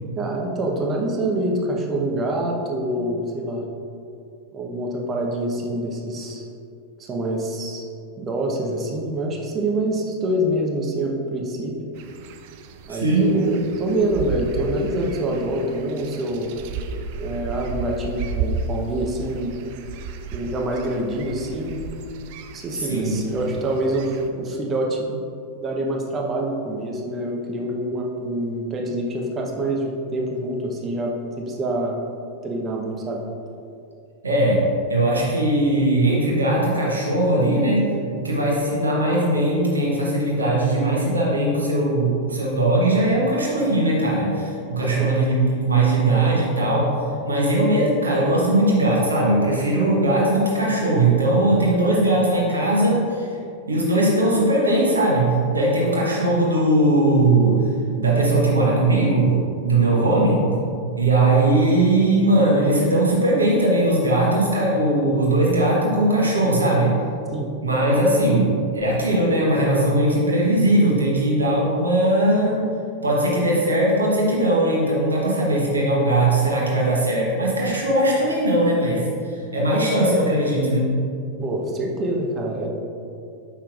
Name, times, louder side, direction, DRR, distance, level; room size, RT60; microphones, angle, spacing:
voice 1, 0.2-3.6 4.5-6.4 7.0-7.8 8.2-11.8 12.9-16.5 17.1-19.6 20.3-21.8 22.5-25.1 25.6-32.0 32.4-33.2 44.8-45.1 67.3-67.5 81.4-82.7, right 1 dB, 25° right, 0 dB, 0.9 m, -26 dB
sound 1, 12.0-24.3, right 4 dB, 50° right, 0.4 m, -33 dB
voice 2, 12.9-13.4 22.7-23.3 34.2-46.9 47.2-53.3 53.7-57.6 58.0-59.4 59.6-60.6 61.0-66.9 67.6-72.7 73.0-81.0, right 1 dB, 75° right, -4 dB, 1.1 m, -19 dB
7.0 x 5.7 x 2.5 m, 2.5 s
figure-of-eight pair, 90°, 0 cm